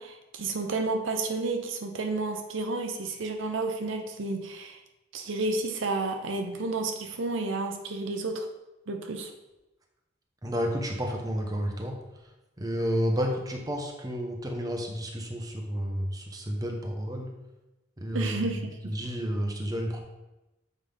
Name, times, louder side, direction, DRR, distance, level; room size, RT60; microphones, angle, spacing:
voice 1, 0.0-4.8 5.1-8.5 8.9-9.3 18.1-19.0, right 3 dB, 75° right, 5 dB, 0.7 m, -31 dB
voice 2, 10.4-12.0 12.6-17.3 18.0-20.0, equal, 20° right, 2 dB, 0.9 m, -31 dB
7.5 x 5.3 x 3.4 m, 1.0 s
head